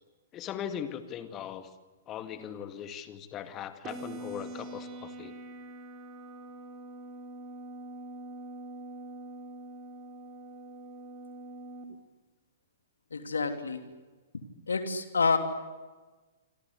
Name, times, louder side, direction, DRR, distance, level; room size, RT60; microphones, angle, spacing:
voice 1, 0.3-1.7 2.1-5.3, left 9 dB, 25° left, 9 dB, 2.3 m, -39 dB
sound 1, 3.8-11.8, right 2 dB, 25° right, 3.9 m, -44 dB
voice 2, 13.1-13.8 14.7-15.4, left 4 dB, 70° left, 6 dB, 3.1 m, -28 dB
27.0 x 25.5 x 8.3 m, 1.2 s
figure-of-eight pair, 110°, 0 cm